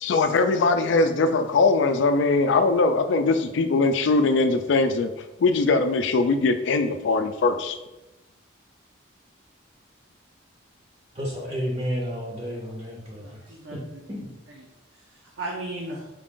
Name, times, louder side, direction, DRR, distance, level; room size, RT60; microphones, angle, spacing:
voice 1, 0.0-5.1 5.4-7.8, left 3 dB, 65° left, 8 dB, 0.3 m, -21 dB
voice 2, 11.1-13.8 14.1-14.3, equal, 30° right, -2 dB, 0.6 m, -31 dB
voice 3, 13.2-14.2 14.5-14.7 14.9-16.1, right 2 dB, 75° right, -2 dB, 0.6 m, -37 dB
4.6 x 2.5 x 3.6 m, 0.98 s
head